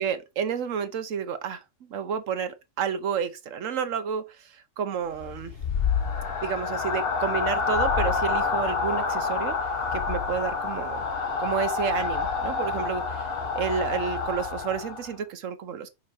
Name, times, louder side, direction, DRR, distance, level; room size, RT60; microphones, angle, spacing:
voice 1, 0.0-1.6 1.9-5.5 6.4-9.6 9.9-11.0 11.4-15.9, right 7 dB, 75° right, 1.2 m, -30 dB
sound 1, 5.1-15.1, left 5 dB, 50° left, 1.2 m, -28 dB
5.6 x 4.0 x 4.8 m
omnidirectional pair, 1.3 m